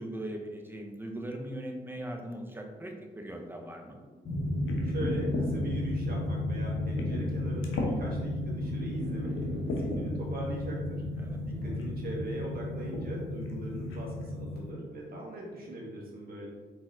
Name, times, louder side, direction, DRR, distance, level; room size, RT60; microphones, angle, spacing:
voice 1, 0.0-4.0 11.2-11.4, right 1 dB, 10° right, 2 dB, 0.8 m, -39 dB
sound 1, 3.3-6.3 7.3-10.3 11.3-11.7, right 1 dB, 75° right, 0.6 m, -43 dB
sound 2, 4.3-14.6, left 1 dB, 50° left, 1.1 m, -33 dB
sound 3, 4.6-5.5 6.2-6.3 7.0-7.3 7.6-8.0 8.6-8.7 9.3-10.0 11.1-11.2 11.7-12.0 12.9-13.1 13.5-13.6 13.9-14.2, left 2 dB, 80° left, 0.7 m, -36 dB
voice 2, 4.8-9.4 9.7-11.0 11.4-16.5, right 1 dB, 45° right, -3 dB, 1.3 m, -40 dB
3.9 x 3.9 x 2.5 m, 1.4 s
hypercardioid pair, 40°, 21 cm